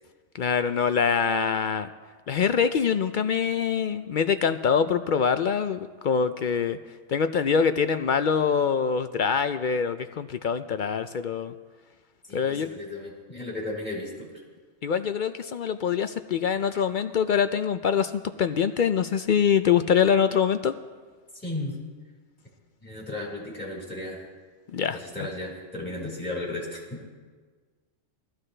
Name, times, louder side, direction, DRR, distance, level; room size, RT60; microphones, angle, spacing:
voice 1, 0.4-1.9 2.3-6.8 7.1-11.5 12.3-12.7 14.8-18.1 18.4-20.7 24.7-25.0, left 7 dB, 60° left, 10 dB, 0.5 m, -24 dB
voice 2, 12.3-14.3 21.4-21.7 22.8-24.2 24.9-27.0, left 2 dB, 10° left, -4 dB, 4.4 m, -35 dB
21.0 x 14.5 x 3.3 m, 1.5 s
omnidirectional pair, 1.2 m